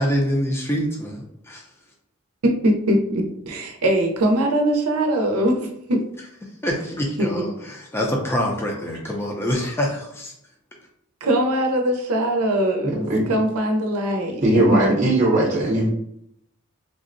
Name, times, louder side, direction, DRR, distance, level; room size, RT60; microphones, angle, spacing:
voice 1, 0.0-1.6 6.6-10.3, equal, 10° left, 0 dB, 0.4 m, -25 dB
voice 2, 2.4-6.0 7.2-7.4 11.2-14.4 14.8-14.9, right 1 dB, 85° right, 3 dB, 0.6 m, -21 dB
voice 3, 12.8-13.4 14.4-15.9, right 1 dB, 35° right, -2 dB, 0.7 m, -19 dB
3.5 x 2.0 x 2.5 m, 0.75 s
head